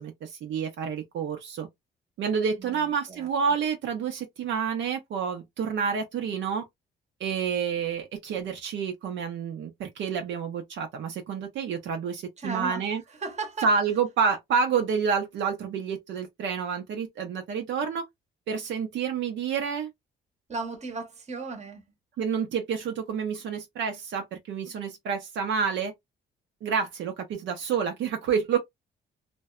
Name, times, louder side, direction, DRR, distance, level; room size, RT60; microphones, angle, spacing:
voice 1, 0.0-1.7 2.2-6.6 7.2-13.0 13.6-18.0 18.5-19.9 22.2-25.9 26.6-28.6, right 6 dB, 70° right, 0.6 m, -29 dB
voice 2, 2.6-3.3 12.4-13.7 20.5-21.9, right 3 dB, 35° right, 0.9 m, -36 dB
2.6 x 2.1 x 2.3 m
cardioid pair, 90°, 20 cm